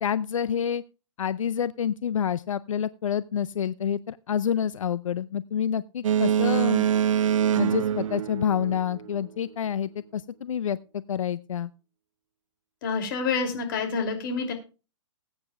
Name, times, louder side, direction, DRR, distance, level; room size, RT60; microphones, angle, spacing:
voice 1, 0.0-0.8 1.2-6.9 7.6-11.7, left 8 dB, 90° left, 17 dB, 0.5 m, -28 dB
Boat Water vehicle, 6.0-9.2, right 9 dB, 85° right, 0.4 m, -24 dB
voice 2, 12.8-14.5, left 5 dB, 40° left, 4 dB, 2.9 m, -28 dB
20.0 x 9.0 x 2.4 m, 0.32 s
hypercardioid pair, 155°, 16 cm